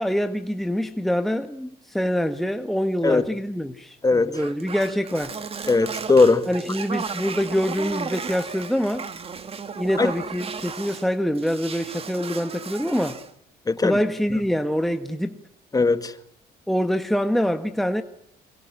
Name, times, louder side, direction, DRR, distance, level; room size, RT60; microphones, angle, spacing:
voice 1, 0.0-5.4 6.5-9.1 9.7-13.2 13.8-15.4 16.7-18.0, equal, ahead, 1.4 m, -25 dB
sound 1, 4.3-11.1 11.4-13.3, right 5 dB, 35° right, 2.5 m, -35 dB
voice 2, 5.7-6.5 10.0-10.1 13.7-13.9 15.7-16.1, left 3 dB, 20° left, 2.0 m, -18 dB
25.5 x 23.5 x 9.9 m
cardioid pair, 110°, 17 cm